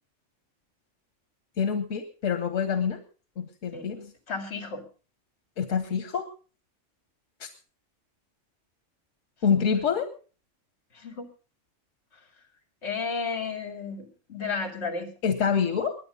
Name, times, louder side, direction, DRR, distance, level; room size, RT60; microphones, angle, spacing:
voice 1, 1.6-3.0 3.4-4.1 5.6-6.3 7.4-7.5 9.4-10.1 15.2-16.0, left 6 dB, 90° left, 10 dB, 1.5 m, -26 dB
voice 2, 4.3-4.8 10.9-11.3 12.8-15.1, left 5 dB, 60° left, 7 dB, 2.8 m, -33 dB
21.0 x 9.8 x 5.3 m, 0.38 s
omnidirectional pair, 1.3 m